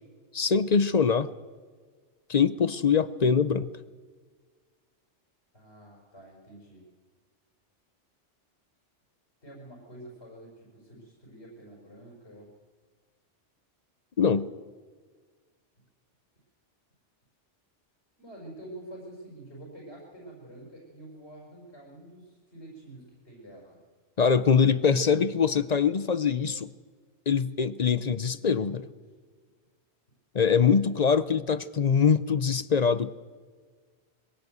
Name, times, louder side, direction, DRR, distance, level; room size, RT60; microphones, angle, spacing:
voice 1, 0.3-1.3 2.3-3.7 14.2-14.5 24.2-26.7 27.3-28.9 30.3-33.1, left 6 dB, 40° left, 14 dB, 0.7 m, -23 dB
voice 2, 5.5-6.9 9.4-12.5 18.2-23.8 24.8-25.0, right 1 dB, 65° left, -2 dB, 5.7 m, -47 dB
22.0 x 17.0 x 8.0 m, 1.5 s
omnidirectional pair, 1.2 m